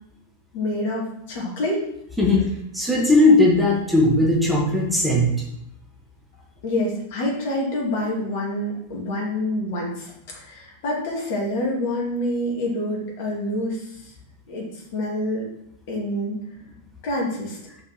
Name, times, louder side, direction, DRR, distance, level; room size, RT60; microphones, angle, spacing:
voice 1, 0.5-1.9 6.6-14.1 14.5-15.5 15.9-16.4 17.0-17.6, left 1 dB, 50° left, -3 dB, 2.9 m, -27 dB
voice 2, 2.2-2.5 2.7-5.4, left 2 dB, ahead, -4 dB, 2.2 m, -18 dB
5.7 x 5.7 x 6.0 m, 0.76 s
figure-of-eight pair, 90°, 0 cm